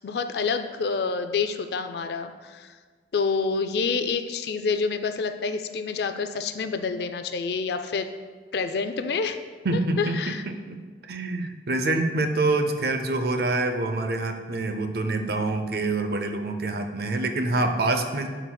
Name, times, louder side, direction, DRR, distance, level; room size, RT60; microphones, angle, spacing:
voice 1, 0.0-2.7 3.1-8.1 8.5-9.4 9.7-10.4, left 5 dB, 65° left, 8 dB, 0.4 m, -28 dB
voice 2, 9.6-10.8 11.0-18.3, right 2 dB, 60° right, 7 dB, 0.5 m, -26 dB
11.5 x 4.0 x 2.2 m, 1.5 s
head